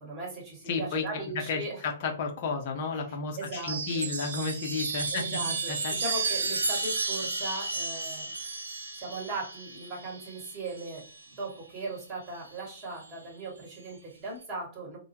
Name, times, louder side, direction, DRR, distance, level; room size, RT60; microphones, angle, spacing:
voice 1, 0.0-1.8 2.9-3.0 3.4-4.1 5.1-8.3 8.9-15.0, right 2 dB, 25° right, -2 dB, 1.1 m, -38 dB
voice 2, 0.7-1.0 1.3-5.9, left 4 dB, 45° left, 3 dB, 0.6 m, -32 dB
Chime, 3.4-11.3 12.5-13.1, right 3 dB, 70° right, 0.4 m, -33 dB
2.2 x 2.0 x 2.8 m, 0.36 s
figure-of-eight pair, 115°, 0 cm